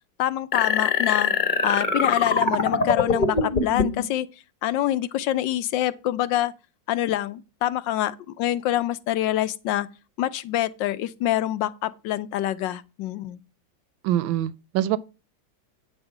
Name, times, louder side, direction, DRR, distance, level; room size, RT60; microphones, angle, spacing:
voice 1, 0.2-1.3 1.6-4.3 4.6-6.5 6.9-9.9 10.2-13.4, left 13 dB, 75° left, 1.3 m, -26 dB
sound 1, 0.5-4.0, left 4 dB, 30° left, 1.0 m, -23 dB
voice 2, 14.0-15.0, right 12 dB, 85° right, 1.5 m, -24 dB
9.0 x 6.4 x 4.9 m
omnidirectional pair, 2.1 m